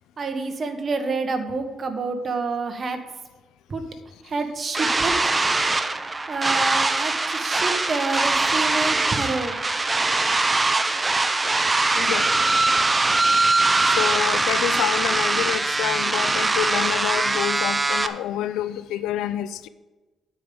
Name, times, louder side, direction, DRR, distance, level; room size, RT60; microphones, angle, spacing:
voice 1, 0.2-3.0 3.7-3.8 4.2-5.1 6.3-9.6, right 3 dB, 45° right, 1.3 m, -28 dB
sound 1, 4.7-18.1, right 3 dB, 20° right, 0.6 m, -22 dB
voice 2, 12.0-12.3 13.8-19.7, left 12 dB, 90° left, 0.4 m, -27 dB
9.3 x 5.0 x 7.6 m
cardioid pair, 90°, 0 cm